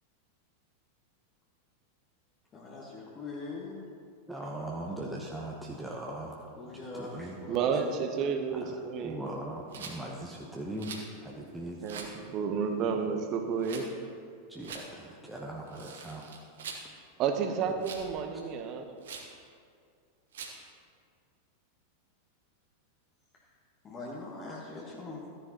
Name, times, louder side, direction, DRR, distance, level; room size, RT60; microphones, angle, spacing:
voice 1, 2.5-3.8 6.6-7.8 23.8-25.3, left 3 dB, 25° left, -3 dB, 1.4 m, -42 dB
voice 2, 4.3-6.4 6.9-7.4 8.6-8.7 9.0-10.9 11.2-11.8 14.5-16.3 17.6-17.7, right 1 dB, 5° right, -2 dB, 1.0 m, -39 dB
voice 3, 7.5-9.3 11.6-13.9 17.2-18.9, right 6 dB, 35° right, 6 dB, 0.9 m, -31 dB
Rattle, 9.7-10.0 10.8-11.1 11.9-12.1 13.6-13.9 14.6-14.8 15.7-16.9 17.8-18.1 19.0-19.3 20.3-20.6, right 5 dB, 60° right, 1.3 m, -43 dB
14.0 x 10.0 x 3.0 m, 2.3 s
figure-of-eight pair, 90°, 0 cm